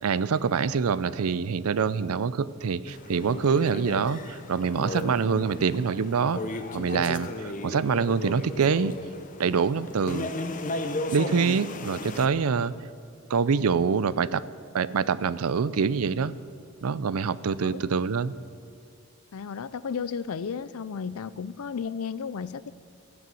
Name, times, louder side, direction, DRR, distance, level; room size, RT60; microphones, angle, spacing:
voice 1, 0.0-6.4 6.7-8.9 9.4-10.3 11.1-12.7 13.3-14.4 14.7-16.3 16.8-18.3, right 5 dB, 85° right, 17 dB, 0.5 m, -25 dB
sound 1, 2.9-12.3, left 2 dB, 35° left, 0.8 m, -35 dB
voice 2, 19.3-22.7, left 6 dB, 80° left, 17 dB, 0.5 m, -33 dB
14.0 x 9.5 x 7.7 m, 2.4 s
head